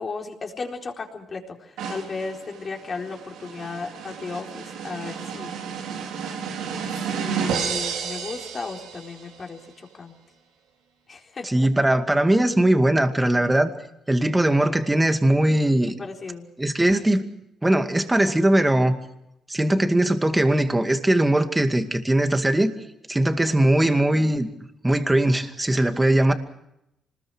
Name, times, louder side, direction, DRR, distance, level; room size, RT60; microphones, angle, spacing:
voice 1, 0.0-5.5 7.1-10.2 11.1-11.7 16.0-16.4, left 4 dB, 40° left, 2 dB, 4.2 m, -35 dB
sound 1, 1.8-9.3, right 6 dB, 85° right, 3.7 m, -32 dB
voice 2, 11.4-13.7 14.1-15.9 16.6-17.2 17.6-19.0 19.5-22.7 23.1-24.5 24.8-26.3, right 1 dB, 10° right, 7 dB, 2.3 m, -20 dB
26.0 x 20.5 x 6.4 m, 0.81 s
cardioid pair, 90°, 0 cm